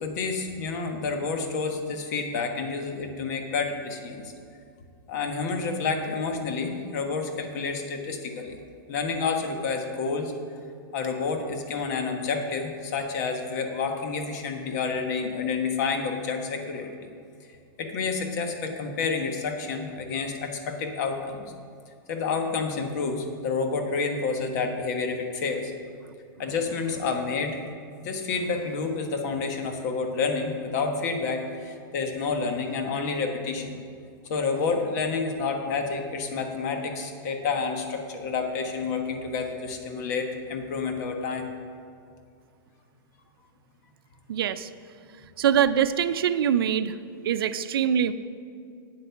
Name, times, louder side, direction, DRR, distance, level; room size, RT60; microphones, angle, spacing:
voice 1, 0.0-4.3 5.1-8.6 8.9-10.3 10.9-17.1 17.8-21.4 22.1-25.7 26.4-27.6 28.0-33.7 34.2-41.5, left 4 dB, 50° left, 4 dB, 1.4 m, -29 dB
voice 2, 44.3-44.7 45.4-46.9 47.2-48.1, right 9 dB, 80° right, 12 dB, 0.5 m, -23 dB
8.8 x 8.3 x 5.9 m, 2.4 s
supercardioid pair, 160°, 12 cm